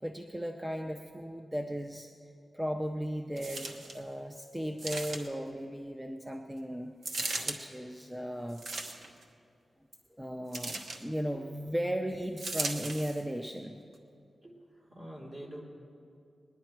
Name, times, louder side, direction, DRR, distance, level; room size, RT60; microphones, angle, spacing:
voice 1, 0.0-2.1 2.5-8.6 10.2-13.8, equal, 5° right, 4 dB, 0.5 m, -36 dB
sound 1, 3.4-4.0 4.8-5.5 7.0-7.6 8.5-9.2 10.5-11.0 12.4-13.2 13.9-14.0, right 2 dB, 85° right, 1.0 m, -37 dB
voice 2, 14.4-15.6, right 1 dB, 40° right, -4 dB, 3.3 m, -47 dB
20.0 x 10.5 x 4.5 m, 2.5 s
wide cardioid pair, 145°, 0 cm